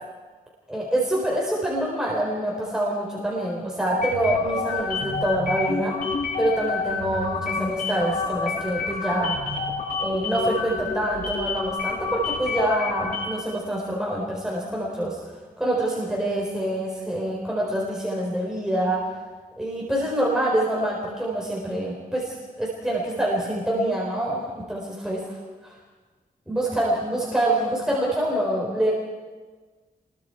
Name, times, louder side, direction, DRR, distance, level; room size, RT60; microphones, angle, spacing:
voice 1, 0.7-5.9 6.4-9.4 10.0-15.2 15.6-19.1 19.6-25.4 25.6-25.7 26.5-28.9, right 1 dB, 5° right, -4 dB, 4.4 m, -26 dB
sound 1, 3.9-13.5, left 4 dB, 75° left, 5.7 m, -29 dB
30.0 x 22.0 x 4.8 m, 1.4 s
wide cardioid pair, 135°, 15 cm